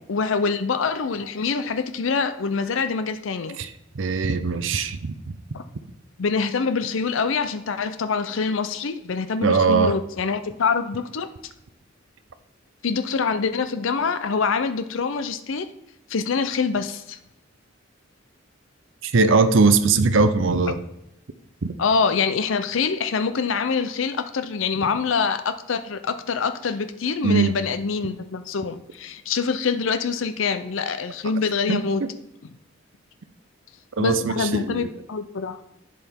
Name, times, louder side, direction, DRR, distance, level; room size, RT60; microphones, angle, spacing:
voice 1, 0.1-3.6 5.5-5.6 6.2-11.3 12.8-15.7 16.1-17.2 21.8-32.0 34.0-35.6, left 5 dB, 80° left, 10 dB, 0.5 m, -25 dB
voice 2, 3.6-5.4 9.4-10.0 19.0-20.8 21.6-21.7 27.2-27.5 31.7-32.1 34.0-34.9, right 4 dB, 75° right, 10 dB, 0.6 m, -21 dB
11.0 x 7.8 x 3.6 m, 0.83 s
head